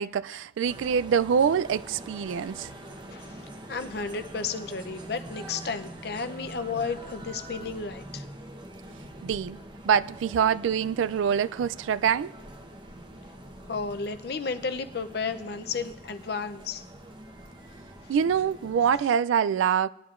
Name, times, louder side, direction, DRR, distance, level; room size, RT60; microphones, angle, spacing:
voice 1, 0.0-2.7 9.2-9.6 9.8-12.3 18.1-19.9, right 7 dB, 85° right, 0.3 m, -25 dB
sound 1, 0.6-19.0, right 1 dB, 25° right, 0.9 m, -44 dB
voice 2, 3.7-8.2 13.7-16.8, left 4 dB, 55° left, 0.5 m, -33 dB
18.5 x 11.0 x 2.5 m
head